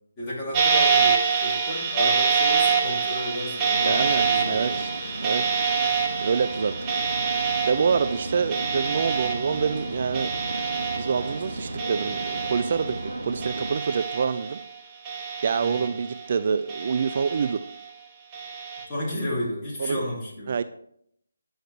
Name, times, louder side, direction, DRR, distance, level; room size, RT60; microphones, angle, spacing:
voice 1, 0.2-4.8 15.6-15.8 18.8-20.5, left 1 dB, 15° left, -7 dB, 2.6 m, -32 dB
sound 1, 0.5-13.1 13.4-14.6 15.0-16.3 16.7-17.7 18.3-18.8, right 6 dB, 20° right, 1.1 m, -26 dB
voice 2, 3.7-4.9 5.2-5.6 6.2-7.0 7.6-10.3 10.9-14.6 15.4-17.6 19.8-20.0 20.5-20.6, right 6 dB, 45° right, 12 dB, 0.3 m, -26 dB
sound 2, 3.8-13.7, right 2 dB, 75° right, 1.6 m, -35 dB
9.5 x 6.3 x 3.1 m, 0.70 s
figure-of-eight pair, 155°, 0 cm